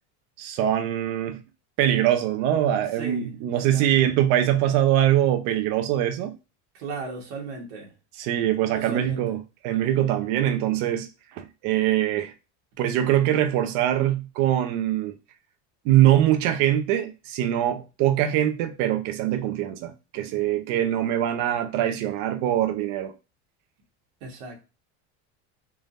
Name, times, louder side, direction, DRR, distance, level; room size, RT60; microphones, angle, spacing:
voice 1, 0.4-1.4 1.8-6.3 8.1-12.3 12.8-15.2 15.8-23.1, right 12 dB, 70° right, 0.8 m, -23 dB
voice 2, 3.0-3.9 6.7-7.9 8.7-9.2 24.2-24.6, right 4 dB, 85° right, 1.6 m, -36 dB
3.8 x 3.4 x 2.5 m
cardioid pair, 140°, 35 cm